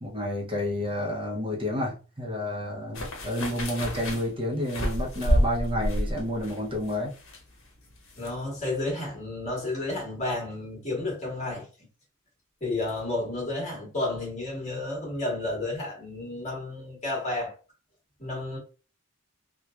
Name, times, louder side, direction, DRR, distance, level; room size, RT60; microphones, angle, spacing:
voice 1, 0.0-7.1, left 1 dB, 25° right, 0.6 m, -30 dB
sound 1, 2.9-8.3 8.6-8.7, equal, 80° left, 0.8 m, -29 dB
voice 2, 8.2-11.7 12.6-17.5 18.2-18.6, left 2 dB, 35° left, 1.4 m, -31 dB
2.9 x 2.2 x 2.3 m
head